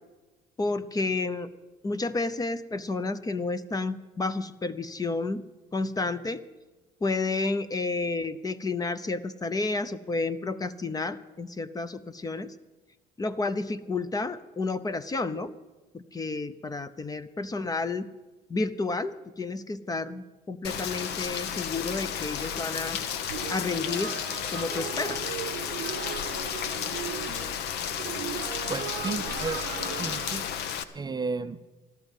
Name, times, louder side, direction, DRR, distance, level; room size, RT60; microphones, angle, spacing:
voice 1, 0.6-1.5 1.8-5.4 5.7-6.4 7.0-12.5 13.2-15.5 15.9-18.1 18.5-23.0 23.5-24.1 24.5-25.3, left 3 dB, 20° left, 14 dB, 0.6 m, -31 dB
Rain, 20.6-30.8, left 8 dB, 80° left, 0.9 m, -33 dB
sound 1, 23.3-30.4, right 13 dB, 75° right, 0.7 m, -38 dB
voice 2, 28.7-29.6 29.9-30.4 30.9-31.6, right 4 dB, 25° right, 11 dB, 0.5 m, -33 dB
15.0 x 12.5 x 5.4 m, 1.2 s
cardioid pair, 110°, 17 cm